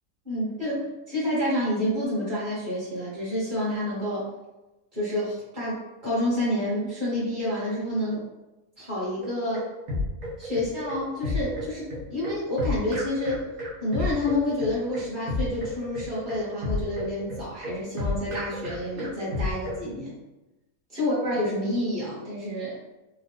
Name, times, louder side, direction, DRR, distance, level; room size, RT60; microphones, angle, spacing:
voice 1, 0.2-4.3 4.9-8.3 8.8-9.7 10.4-13.5 13.8-20.2 20.9-22.8, left 1 dB, 35° right, -8 dB, 1.7 m, -28 dB
sound 1, 9.2-19.8, left 2 dB, 80° right, 1.4 m, -31 dB
3.9 x 2.4 x 3.0 m, 1.0 s
omnidirectional pair, 1.5 m